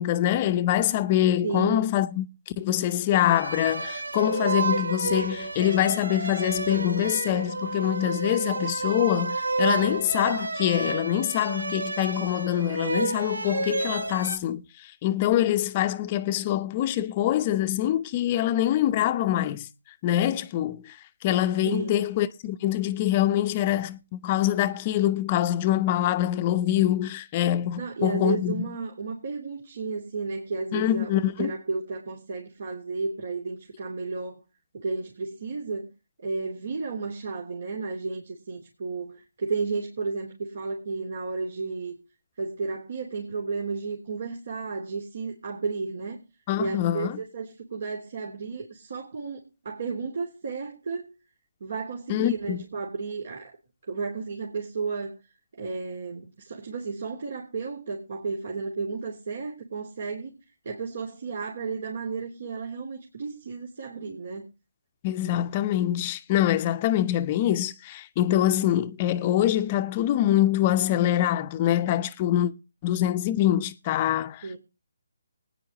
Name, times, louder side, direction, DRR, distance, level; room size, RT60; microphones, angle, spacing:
voice 1, 0.0-19.7 20.0-21.0 21.2-28.6 30.7-31.5 46.5-47.2 52.1-52.6 65.0-72.5 72.8-74.6, left 12 dB, 25° left, 0.9 m, -25 dB
voice 2, 1.4-1.9 21.6-22.0 27.8-34.4 34.8-35.9 36.2-41.9 42.4-46.2 46.6-51.1 51.6-53.5 53.9-55.2 55.5-60.3 60.6-64.5 74.4-74.6, right 4 dB, 55° right, 3.2 m, -33 dB
sound 1, 3.1-14.4, right 3 dB, 80° right, 1.3 m, -30 dB
20.5 x 10.0 x 3.0 m
figure-of-eight pair, 155°, 0 cm